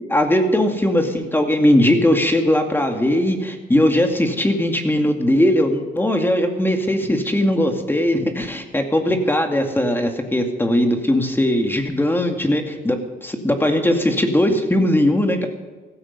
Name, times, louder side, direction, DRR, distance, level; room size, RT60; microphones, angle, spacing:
voice 1, 0.0-15.5, left 1 dB, 10° left, 4 dB, 2.3 m, -19 dB
16.0 x 14.0 x 5.4 m, 1.3 s
cardioid pair, 90°, 20 cm